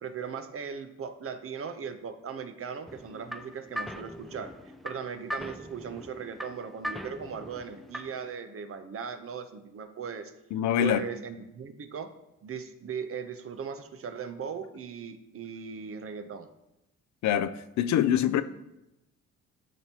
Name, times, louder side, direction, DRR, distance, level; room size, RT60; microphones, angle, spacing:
voice 1, 0.0-4.6 4.8-10.3 10.8-12.1 12.4-16.5, right 6 dB, 45° right, 10 dB, 0.8 m, -38 dB
sound 1, 2.9-8.3, equal, ahead, 0.4 m, -40 dB
voice 2, 10.5-11.0 17.2-18.4, left 10 dB, 65° left, 13 dB, 0.5 m, -25 dB
12.5 x 4.5 x 2.9 m, 0.91 s
cardioid pair, 90°, 30 cm